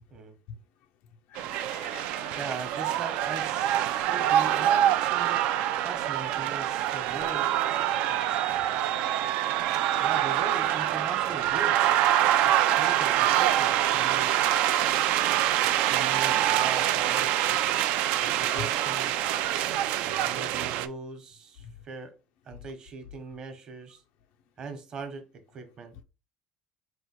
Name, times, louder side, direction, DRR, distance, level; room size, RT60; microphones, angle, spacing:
voice 1, 1.3-2.6 18.6-18.7, left 7 dB, 75° left, 0.4 m, -43 dB
sound 1, 1.4-20.9, right 12 dB, 70° right, 0.4 m, -25 dB
voice 2, 2.3-5.4 5.8-7.5 10.0-12.2 12.4-14.6 15.9-17.6 18.1-19.1 20.0-22.2 22.4-24.0 24.6-25.9, right 4 dB, 35° right, 1.0 m, -40 dB
4.3 x 2.3 x 4.3 m
cardioid pair, 150°, 2 cm